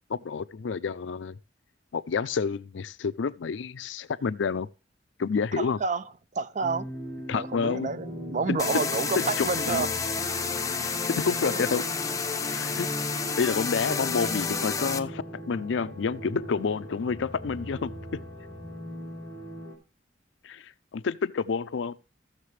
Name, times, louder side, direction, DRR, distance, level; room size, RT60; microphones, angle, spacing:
voice 1, 0.1-1.4 1.9-4.7 5.2-5.8 7.3-7.9 8.5-8.6 9.2-9.9 11.1-11.9 12.5-12.9 13.4-18.2 20.4-22.0, left 5 dB, 75° left, 0.4 m, -29 dB
voice 2, 5.6-6.0 6.3-6.9 7.3-9.9 11.4-11.7, right 4 dB, 40° right, 0.5 m, -29 dB
sound 1, 6.6-19.8, equal, 60° right, 3.6 m, -40 dB
sound 2, 8.6-15.0, left 5 dB, 20° left, 0.5 m, -30 dB
15.0 x 6.6 x 3.2 m
head